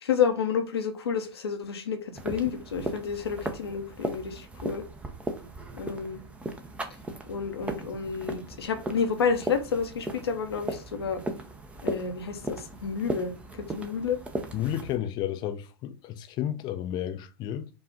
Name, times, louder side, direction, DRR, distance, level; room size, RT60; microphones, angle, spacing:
voice 1, 0.0-4.8 5.8-6.2 7.3-11.2 11.8-13.3 13.6-14.2, left 6 dB, 75° left, 0.8 m, -30 dB
sound 1, 2.1-15.0, right 2 dB, 10° right, 0.6 m, -37 dB
voice 2, 14.5-17.7, left 11 dB, 35° left, 0.5 m, -32 dB
5.0 x 2.4 x 3.6 m
hypercardioid pair, 105°, 13 cm